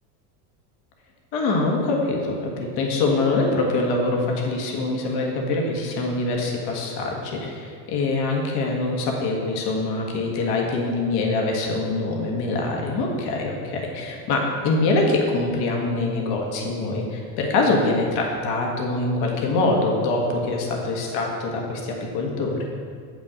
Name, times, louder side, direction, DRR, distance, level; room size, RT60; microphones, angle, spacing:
voice 1, 1.3-22.6, left 2 dB, 50° left, 0 dB, 1.6 m, -24 dB
7.4 x 6.0 x 5.0 m, 2.1 s
supercardioid pair, 135°, 49 cm